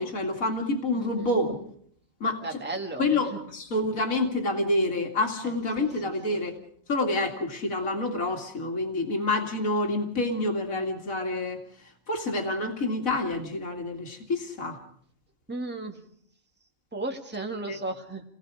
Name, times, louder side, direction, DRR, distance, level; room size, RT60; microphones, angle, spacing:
voice 1, 0.0-1.6 2.2-2.6 3.0-6.6 6.9-11.6 12.1-14.8 17.7-17.8, left 2 dB, 70° left, 3 dB, 2.7 m, -28 dB
voice 2, 0.9-1.4 2.4-3.4 5.4-5.9 6.3-6.4 15.5-16.1 16.9-18.2, right 2 dB, 5° right, 2 dB, 1.8 m, -35 dB
29.0 x 19.0 x 4.9 m, 0.63 s
omnidirectional pair, 1.5 m